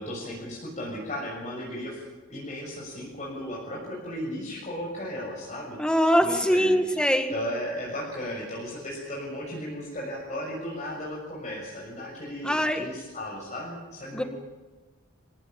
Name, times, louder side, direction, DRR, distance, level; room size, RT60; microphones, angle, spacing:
voice 1, 0.0-2.0 2.3-5.8 6.2-14.3, equal, 35° left, -4 dB, 6.8 m, -35 dB
voice 2, 5.8-7.3 12.4-12.9 14.1-14.2, equal, 5° left, 6 dB, 1.9 m, -23 dB
27.0 x 17.5 x 8.9 m, 1.3 s
head